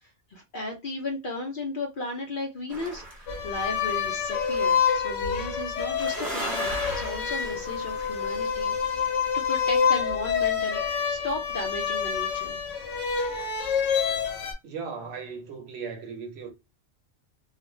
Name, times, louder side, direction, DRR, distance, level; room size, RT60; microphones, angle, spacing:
voice 1, 0.0-8.7 9.0-12.6, left 2 dB, 55° left, 0.6 m, -35 dB
sound 1, 2.7-4.9 5.9-9.0, right 2 dB, 40° right, 0.7 m, -39 dB
sound 2, 3.3-14.5, left 7 dB, 85° left, 1.0 m, -27 dB
voice 2, 14.6-16.5, right 5 dB, 65° right, 0.8 m, -37 dB
2.4 x 2.1 x 3.1 m
omnidirectional pair, 1.2 m